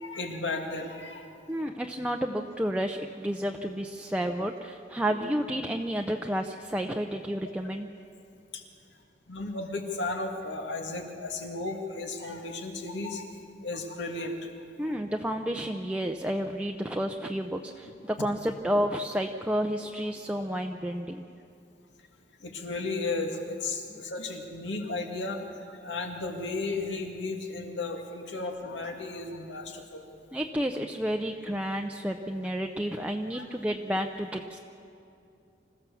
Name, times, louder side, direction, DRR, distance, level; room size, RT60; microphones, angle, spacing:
voice 1, 0.0-1.2 8.5-8.6 9.3-13.3 13.6-14.5 14.8-15.0 18.0-18.1 22.4-25.4 25.7-30.0 33.0-33.1 33.3-33.5, left 3 dB, 75° left, 3 dB, 2.3 m, -34 dB
voice 2, 1.5-7.9 14.8-21.2 23.9-24.0 30.3-34.6, equal, 5° right, 3 dB, 0.6 m, -31 dB
26.5 x 15.5 x 7.0 m, 2.7 s
head